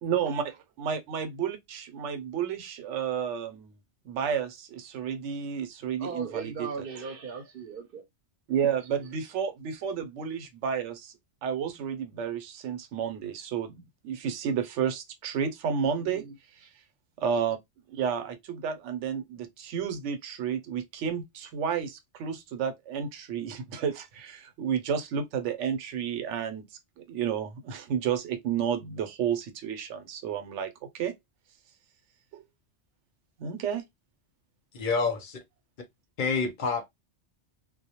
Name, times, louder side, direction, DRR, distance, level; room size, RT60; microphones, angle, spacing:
voice 1, 0.0-3.8 4.1-6.8 8.5-11.1 11.4-16.2 17.2-17.6 17.9-26.6 27.0-31.1 32.3-32.4 33.4-33.9, right 7 dB, 90° right, 0.9 m, -31 dB
voice 2, 6.0-8.0 16.0-16.3, right 5 dB, 60° right, 0.7 m, -38 dB
voice 3, 34.7-35.4 36.2-36.9, left 4 dB, 50° left, 0.7 m, -28 dB
2.1 x 2.0 x 2.8 m
omnidirectional pair, 1.2 m